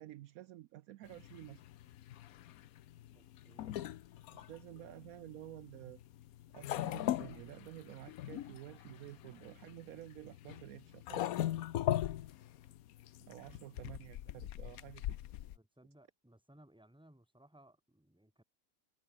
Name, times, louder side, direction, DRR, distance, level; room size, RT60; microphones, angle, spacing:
voice 1, 0.0-1.6 4.3-6.0 6.5-11.3 13.3-15.2, right 15 dB, 80° right, 0.7 m, -51 dB
sound 1, 1.1-15.6, left 13 dB, 65° left, 0.9 m, -41 dB
voice 2, 3.1-3.9 13.7-14.1 15.5-18.4, right 1 dB, 5° right, 1.9 m, -63 dB
omnidirectional pair, 2.0 m